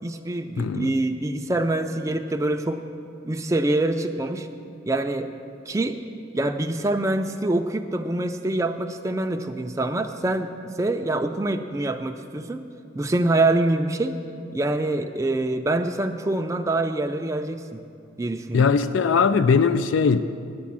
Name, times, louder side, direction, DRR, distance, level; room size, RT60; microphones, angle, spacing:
voice 1, 0.0-2.8 3.2-4.5 4.9-5.3 5.7-6.0 6.3-12.7 13.0-14.2 14.5-17.8 18.2-18.7, right 2 dB, 15° right, 0.4 m, -25 dB
voice 2, 0.6-0.9 18.5-20.2, left 5 dB, 85° left, 0.4 m, -20 dB
9.4 x 8.9 x 7.3 m
head